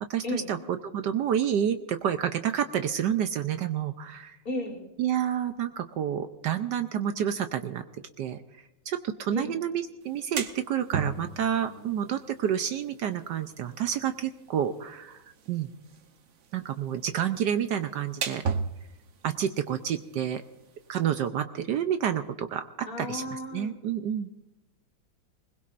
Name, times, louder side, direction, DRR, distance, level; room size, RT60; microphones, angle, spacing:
voice 1, 0.0-4.4 5.0-7.8 8.2-8.4 8.9-15.2 15.5-15.7 16.5-18.4 19.2-20.4 20.9-24.3, right 9 dB, 70° right, 9 dB, 1.2 m, -29 dB
voice 2, 4.4-4.8 9.3-9.5 22.9-23.7, left 1 dB, 45° left, 1 dB, 3.0 m, -33 dB
sound 1, 10.0-21.3, right 5 dB, 50° right, 0.9 m, -39 dB
20.5 x 20.5 x 2.5 m, 0.99 s
omnidirectional pair, 2.1 m